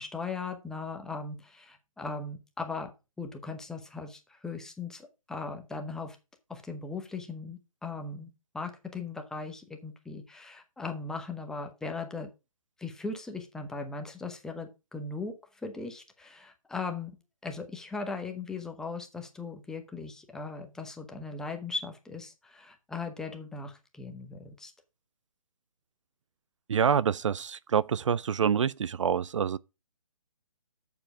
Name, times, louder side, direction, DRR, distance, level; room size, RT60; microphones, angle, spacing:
voice 1, 0.0-2.9 3.2-6.2 6.5-8.3 8.5-12.3 12.8-17.1 17.4-24.7, left 4 dB, 5° left, 0.8 m, -38 dB
voice 2, 26.7-29.6, right 7 dB, 60° right, 0.4 m, -26 dB
7.8 x 7.0 x 4.8 m
figure-of-eight pair, 150°, 18 cm